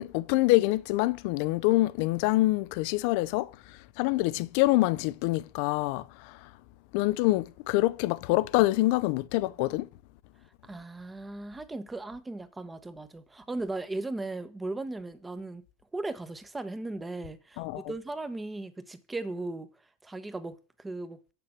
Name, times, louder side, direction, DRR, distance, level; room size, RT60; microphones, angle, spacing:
voice 1, 0.0-3.5 4.0-6.5 6.9-9.9 17.6-17.9, left 18 dB, 60° left, 0.6 m, -26 dB
voice 2, 10.6-15.6 15.9-19.7 20.0-21.2, right 2 dB, 10° right, 1.1 m, -37 dB
7.5 x 6.8 x 7.4 m
hypercardioid pair, 110°, 0 cm